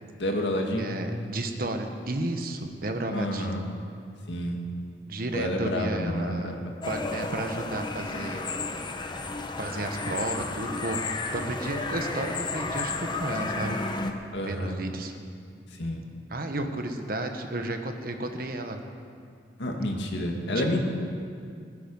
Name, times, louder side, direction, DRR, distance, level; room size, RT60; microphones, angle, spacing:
voice 1, 0.2-0.9 3.1-3.7 4.3-4.6 5.3-6.7 14.3-14.8 15.7-16.0 19.6-20.8, left 1 dB, 80° left, 2 dB, 1.9 m, -29 dB
voice 2, 0.8-3.6 5.1-6.5 6.9-8.4 9.6-11.0 11.3-12.9 13.2-13.8 14.4-15.1 16.3-18.8 20.5-20.6, right 1 dB, 55° right, 5 dB, 1.3 m, -32 dB
sound 1, 6.8-14.1, left 3 dB, 25° left, 0.9 m, -32 dB
20.0 x 10.0 x 5.5 m, 2.3 s
head